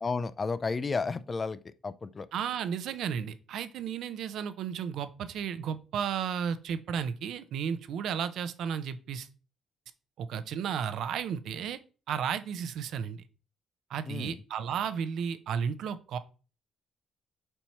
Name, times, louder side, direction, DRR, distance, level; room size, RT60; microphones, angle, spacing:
voice 1, 0.0-2.3 14.1-14.4, left 4 dB, 25° left, 0.3 m, -32 dB
voice 2, 2.3-9.3 10.2-11.8 12.1-13.2 13.9-16.2, right 7 dB, 65° right, 0.6 m, -33 dB
4.5 x 4.4 x 5.5 m
cardioid pair, 155°, 0 cm